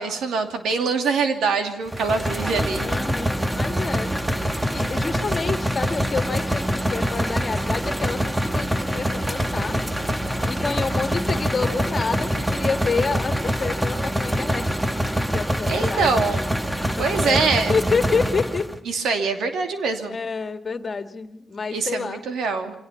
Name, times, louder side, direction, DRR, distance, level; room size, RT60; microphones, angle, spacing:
voice 1, 0.0-2.9 15.7-16.4 17.0-17.8 18.9-20.2 21.7-22.7, right 4 dB, 85° right, 6 dB, 2.7 m, -24 dB
sound 1, 1.9-18.8, equal, 10° right, 1.6 m, -25 dB
voice 2, 2.8-4.2 4.7-9.8 10.5-14.7 15.3-16.1 16.9-17.4 17.7-18.7 20.1-22.2, left 4 dB, 45° left, 8 dB, 2.0 m, -28 dB
25.0 x 18.0 x 5.9 m, 0.86 s
cardioid pair, 80°, 0 cm